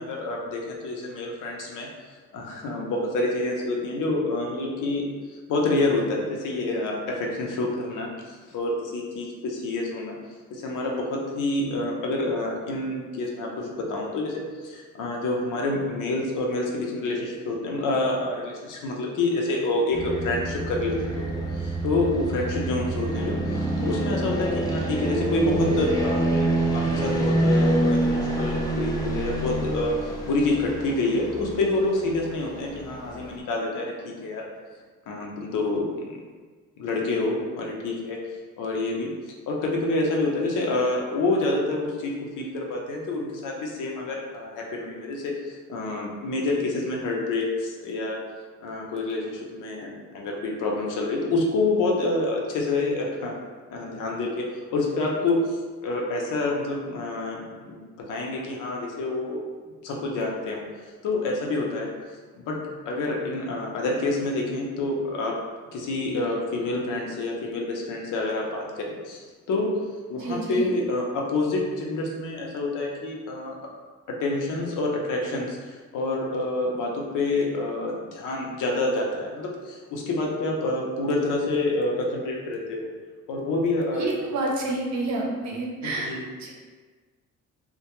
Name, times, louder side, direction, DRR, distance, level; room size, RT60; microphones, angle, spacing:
voice 1, 0.0-1.9 2.3-10.2 10.5-21.1 21.5-34.5 35.1-36.2 36.8-38.2 38.6-39.1 39.5-48.2 48.6-53.4 53.7-59.4 59.8-60.6 61.0-61.9 62.3-62.6 62.9-65.4 65.7-69.8 70.1-73.6 74.1-82.9 83.3-84.1 85.8-86.2, left 2 dB, 70° left, -1 dB, 0.6 m, -27 dB
sound 1, 19.9-33.4, right 1 dB, 10° left, 0.4 m, -27 dB
voice 2, 70.2-70.6 83.9-86.5, right 2 dB, 60° right, -1 dB, 0.6 m, -29 dB
2.2 x 2.1 x 2.9 m, 1.4 s
cardioid pair, 95°, 32 cm